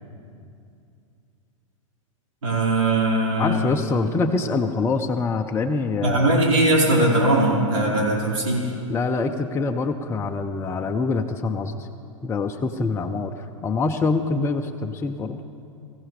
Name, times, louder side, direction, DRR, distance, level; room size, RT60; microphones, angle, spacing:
voice 1, 2.4-3.6 6.0-8.7, right 1 dB, 70° right, -4 dB, 4.6 m, -20 dB
voice 2, 3.4-6.3 8.9-11.9 12.2-15.4, left 3 dB, 15° left, 4 dB, 0.6 m, -25 dB
22.5 x 15.0 x 3.3 m, 2.5 s
hypercardioid pair, 105°, 17 cm